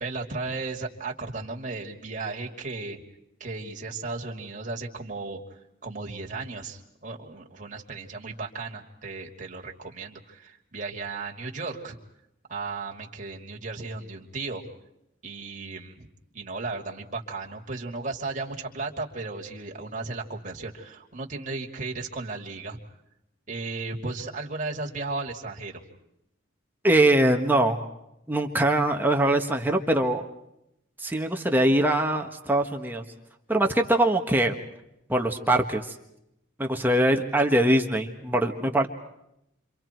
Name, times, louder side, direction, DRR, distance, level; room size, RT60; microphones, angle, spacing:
voice 1, 0.0-3.0 3.4-12.0 12.5-14.7 15.2-16.1 16.3-22.8 23.5-25.8, right 3 dB, 35° right, -1 dB, 2.8 m, -35 dB
voice 2, 26.8-27.9 28.3-30.2 31.0-33.0 33.5-34.6 35.1-36.0 36.6-38.9, right 1 dB, 10° right, 3 dB, 1.4 m, -22 dB
30.0 x 26.5 x 4.6 m, 0.81 s
head